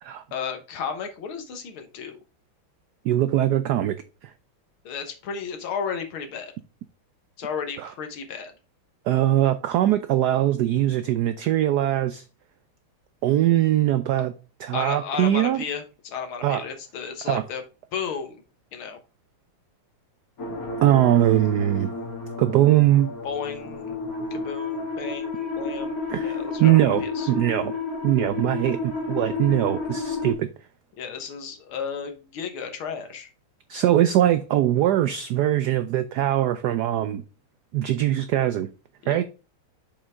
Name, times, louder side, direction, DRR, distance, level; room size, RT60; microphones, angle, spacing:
voice 1, 0.3-2.2 4.9-6.5 7.4-8.5 14.7-17.6 17.9-18.4 18.7-19.0 23.2-24.0 24.3-27.3 31.0-33.3 39.0-39.2, left 6 dB, 80° left, 2.1 m, -33 dB
voice 2, 3.0-4.0 4.2-4.3 7.8-7.9 9.1-12.2 13.2-14.3 14.6-15.6 16.4-16.6 17.2-17.4 20.8-21.9 22.4-23.1 26.1-27.7 28.0-30.5 33.7-37.2 37.7-38.7 39.1-39.2, right 13 dB, 85° right, 0.8 m, -21 dB
sound 1, 20.4-30.3, left 3 dB, 45° left, 2.1 m, -31 dB
7.2 x 5.2 x 3.6 m
omnidirectional pair, 2.3 m